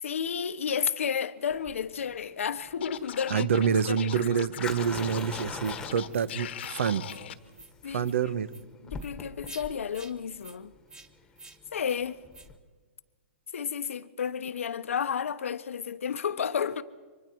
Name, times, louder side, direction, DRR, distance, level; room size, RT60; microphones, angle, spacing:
voice 1, 0.0-3.5 3.9-4.5 7.8-8.2 8.8-10.7 11.7-12.2 13.5-16.8, left 7 dB, 90° left, 1.1 m, -32 dB
Fire, 1.5-12.6, left 4 dB, 10° left, 1.5 m, -43 dB
Scratching (performance technique), 2.8-7.3, left 10 dB, 60° left, 1.2 m, -41 dB
voice 2, 3.3-7.1 7.9-8.5, right 7 dB, 70° right, 1.1 m, -27 dB
sound 1, 5.1-5.3 5.6-5.8 6.1-6.3 6.6-6.7 7.0-7.2 7.5-7.7 8.0-8.2 8.5-8.6 9.0-9.1 9.4-9.6 9.9-10.1 10.4-10.6 10.9-11.1 11.4-11.6 11.8-12.0 12.3-12.5, right 3 dB, 10° right, 1.0 m, -49 dB
29.5 x 25.0 x 4.7 m
hypercardioid pair, 160°, 7 cm